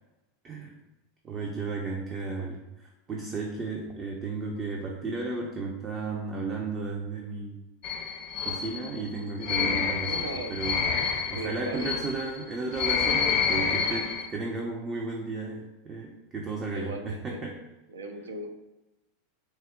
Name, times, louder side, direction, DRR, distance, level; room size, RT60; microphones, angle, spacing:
voice 1, 0.4-0.8 1.2-7.6 8.4-17.6, right 3 dB, 30° right, 0 dB, 0.5 m, -34 dB
sound 1, 7.8-14.3, left 6 dB, 45° left, 0.5 m, -28 dB
voice 2, 9.9-10.5 11.3-11.9 16.7-17.4 17.9-18.5, right 2 dB, 80° right, 5 dB, 0.5 m, -37 dB
4.2 x 2.0 x 3.6 m, 1.0 s
figure-of-eight pair, 90°, 0 cm